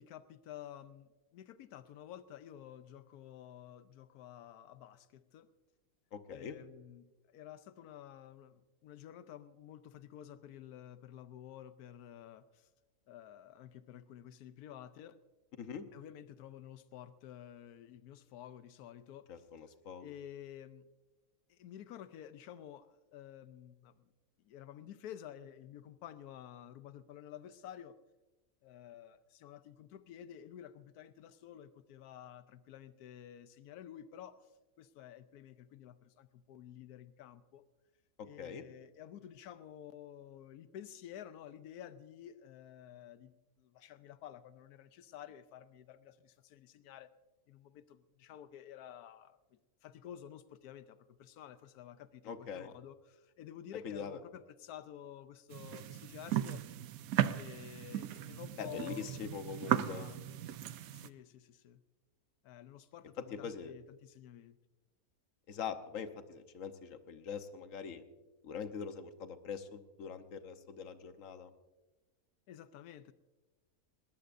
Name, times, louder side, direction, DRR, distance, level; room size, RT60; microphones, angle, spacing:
voice 1, 0.0-5.5 6.3-12.7 13.1-15.2 15.9-19.5 20.0-20.8 21.5-24.1 24.4-28.0 28.6-37.7 38.2-47.1 47.5-49.4 49.8-56.6 57.3-60.3 60.9-61.8 62.4-64.6 72.5-73.1, left 10 dB, 90° left, 12 dB, 1.2 m, -51 dB
voice 2, 6.1-6.5 15.6-15.8 19.3-20.1 38.2-38.6 52.2-52.7 53.8-54.2 58.6-60.1 63.3-63.7 65.5-68.0 68.4-71.5, left 7 dB, 60° left, 9 dB, 1.3 m, -43 dB
sound 1, 55.5-61.1, right 11 dB, 75° right, 1.0 m, -36 dB
20.5 x 19.0 x 2.6 m, 1.1 s
omnidirectional pair, 1.6 m